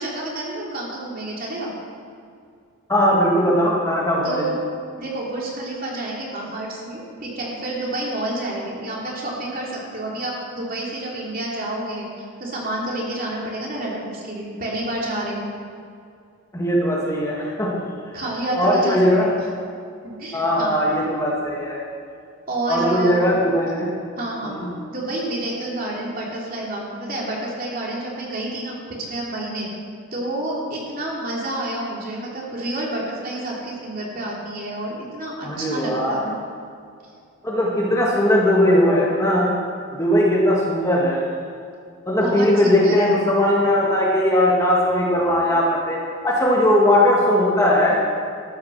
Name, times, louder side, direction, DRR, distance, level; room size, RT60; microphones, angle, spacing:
voice 1, 0.0-1.7 4.2-4.5 5.0-15.4 18.1-19.4 20.0-20.8 22.5-23.3 24.2-24.6 24.9-29.7 30.1-36.4 42.2-43.2, right 1 dB, 40° right, -4 dB, 3.2 m, -29 dB
voice 2, 2.9-4.4 16.5-17.8 18.6-19.3 20.3-21.8 22.7-23.9 24.4-24.7 35.4-36.2 37.4-39.5 39.9-41.2 42.1-46.0 46.2-48.0, left 1 dB, 15° left, -4 dB, 2.0 m, -19 dB
13.5 x 10.0 x 6.5 m, 2.4 s
head